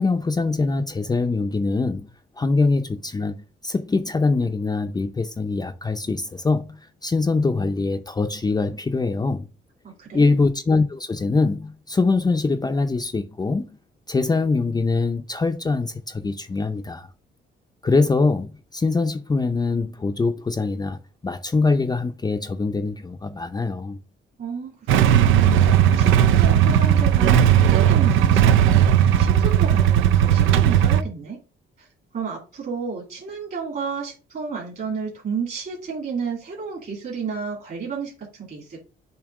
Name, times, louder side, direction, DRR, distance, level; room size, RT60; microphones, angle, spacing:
voice 1, 0.0-2.1 2.4-9.5 10.1-13.7 14.1-17.1 17.8-21.0 21.2-24.0, left 3 dB, 20° left, 0.5 m, -23 dB
voice 2, 9.8-10.4 24.4-24.8 25.1-25.7 26.0-31.4 31.8-31.9 32.1-38.9, right 5 dB, 50° right, 2.4 m, -32 dB
Motorcycle / Engine starting / Idling, 24.9-31.0, right 10 dB, 85° right, 0.5 m, -16 dB
7.2 x 2.9 x 4.7 m
cardioid pair, 90°, 20 cm